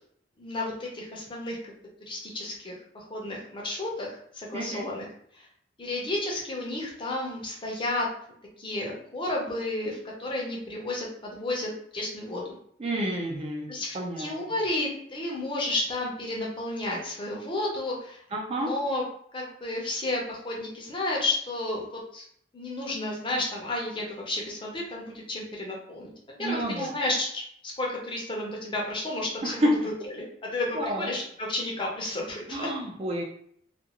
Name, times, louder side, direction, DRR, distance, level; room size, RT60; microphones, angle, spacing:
voice 1, 0.4-5.0 5.3-5.5 5.8-8.1 8.6-12.6 13.7-18.2 18.6-19.0 19.3-21.8 22.1-22.2 22.5-26.1 26.4-32.7, left 2 dB, 25° left, -2 dB, 0.6 m, -32 dB
voice 2, 4.5-4.9 12.8-14.3 18.3-18.7 26.4-26.9 29.4-29.7 30.7-31.1 32.5-33.2, right 1 dB, 35° right, 0 dB, 0.4 m, -30 dB
2.4 x 2.3 x 2.9 m, 0.65 s
head